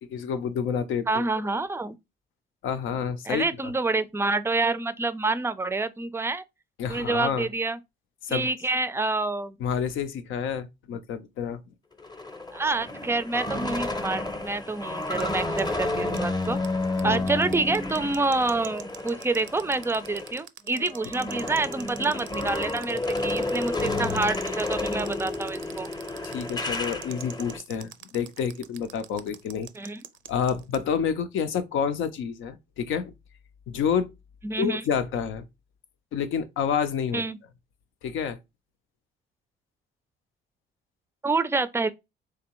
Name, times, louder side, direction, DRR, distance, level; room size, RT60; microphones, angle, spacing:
voice 1, 0.0-1.2 2.6-3.7 6.8-7.5 8.2-8.5 9.6-11.6 17.0-17.3 26.2-29.7 30.3-33.1 33.7-34.1 34.6-35.5 36.1-37.2 38.0-38.4, left 7 dB, 80° left, 0.6 m, -29 dB
voice 2, 1.1-2.0 3.3-6.4 6.9-7.8 8.3-9.6 12.5-16.6 17.0-25.9 29.8-30.0 34.4-34.8 37.1-37.4 41.2-41.9, right 3 dB, 10° right, 0.4 m, -27 dB
sound 1, 12.0-20.4 20.7-27.6, left 2 dB, 20° left, 0.7 m, -31 dB
sound 2, 15.0-30.8, right 12 dB, 80° right, 0.5 m, -43 dB
3.7 x 3.3 x 3.0 m
cardioid pair, 90°, 20 cm